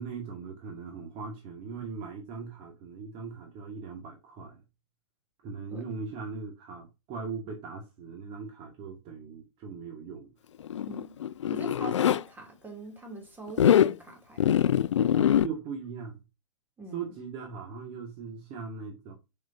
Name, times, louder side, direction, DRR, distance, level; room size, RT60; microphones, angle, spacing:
voice 1, 0.0-4.6 5.4-10.3 15.4-16.2 16.9-19.1, right 5 dB, 35° right, 1.8 m, -39 dB
Zipper (clothing), 10.6-12.2 13.5-13.9 14.4-15.5, left 10 dB, 75° left, 0.4 m, -23 dB
voice 2, 10.8-11.2 11.5-15.5 16.8-17.1, right 2 dB, 10° right, 2.9 m, -44 dB
6.6 x 6.3 x 2.7 m
hypercardioid pair, 115°, 15 cm